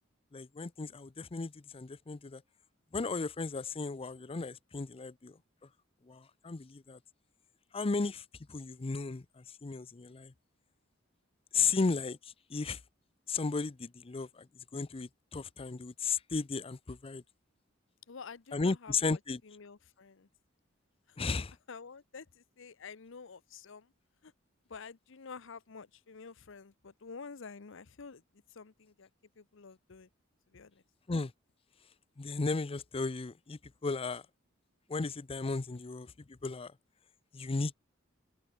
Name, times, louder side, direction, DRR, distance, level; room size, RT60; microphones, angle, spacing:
voice 1, 0.3-2.4 2.9-5.4 6.1-7.0 7.7-10.3 11.5-12.8 13.3-14.5 14.7-17.2 18.5-19.4 21.2-21.5 31.1-31.3 32.2-34.2 34.9-36.7 37.3-37.7, left 4 dB, 30° left, 0.5 m, -35 dB
voice 2, 18.1-20.3 21.1-21.2 21.7-23.9 24.2-24.3 24.7-28.2 28.5-29.1 29.4-30.1 30.5-30.8, left 5 dB, 70° left, 0.8 m, -49 dB
open air
head